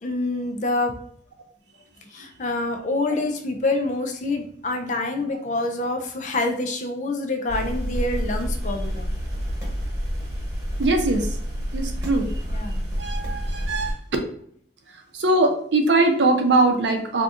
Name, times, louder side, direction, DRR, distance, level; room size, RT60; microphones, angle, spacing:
voice 1, 0.0-0.9 2.1-9.1 12.5-12.8, left 2 dB, 40° left, 4 dB, 0.4 m, -26 dB
sound 1, 7.5-13.9, equal, 20° right, 1.2 m, -28 dB
voice 2, 10.8-11.3 11.7-12.3 13.0-13.9 15.2-17.2, right 2 dB, 75° right, 4 dB, 0.6 m, -21 dB
3.6 x 2.7 x 2.4 m, 0.64 s
head